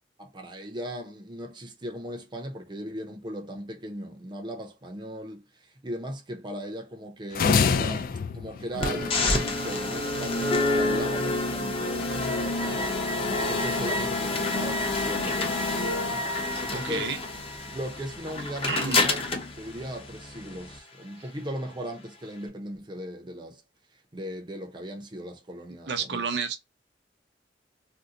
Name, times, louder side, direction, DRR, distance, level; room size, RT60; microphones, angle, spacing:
voice 1, 0.2-5.4 5.8-8.1 8.3-13.0 13.3-16.2 16.6-17.1 17.7-19.3 19.6-23.6 24.1-26.2, equal, 25° right, 0.6 m, -38 dB
sound 1, 7.3-9.6, left 5 dB, 50° left, 0.3 m, -26 dB
sound 2, 8.8-20.8, left 2 dB, 30° left, 0.8 m, -28 dB
voice 2, 16.7-17.2 18.7-19.0 25.9-26.6, right 5 dB, 65° right, 0.6 m, -30 dB
2.7 x 2.1 x 3.7 m
head